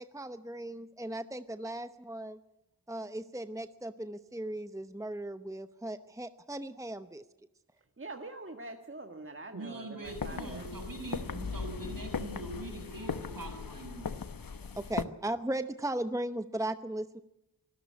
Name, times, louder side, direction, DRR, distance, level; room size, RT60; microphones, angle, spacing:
voice 1, 0.0-2.4 2.9-7.2 14.8-17.2, right 1 dB, 10° right, 11 dB, 0.9 m, -37 dB
voice 2, 8.0-10.7, right 2 dB, 35° right, 5 dB, 1.7 m, -44 dB
voice 3, 9.5-14.1, right 2 dB, 65° right, 5 dB, 6.4 m, -42 dB
sound 1, 10.0-15.0, left 5 dB, 65° left, 1.0 m, -38 dB
25.0 x 13.5 x 9.6 m, 0.92 s
wide cardioid pair, 55°, 37 cm